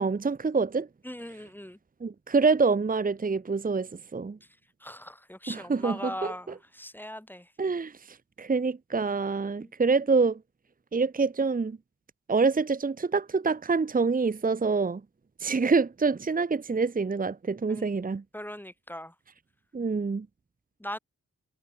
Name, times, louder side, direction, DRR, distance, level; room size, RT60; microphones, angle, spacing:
voice 1, 0.0-0.9 2.0-4.4 5.5-6.3 7.6-10.4 10.9-11.8 12.3-15.0 15.4-18.2 19.7-20.3, right 4 dB, 25° right, 1.0 m, -26 dB
voice 2, 1.0-1.8 4.8-7.5 9.6-9.7 17.7-17.9 18.3-19.1 20.8-21.0, left 1 dB, 5° left, 3.0 m, -39 dB
wide cardioid pair, 145°, 31 cm